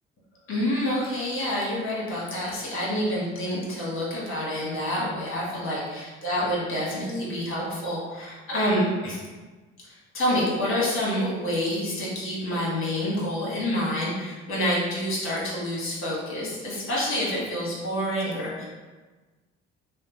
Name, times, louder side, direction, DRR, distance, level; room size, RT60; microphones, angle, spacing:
voice 1, 0.5-9.2 9.9-18.6, equal, 40° left, -5 dB, 1.2 m, -28 dB
2.7 x 2.1 x 2.7 m, 1.3 s
hypercardioid pair, 55°, 31 cm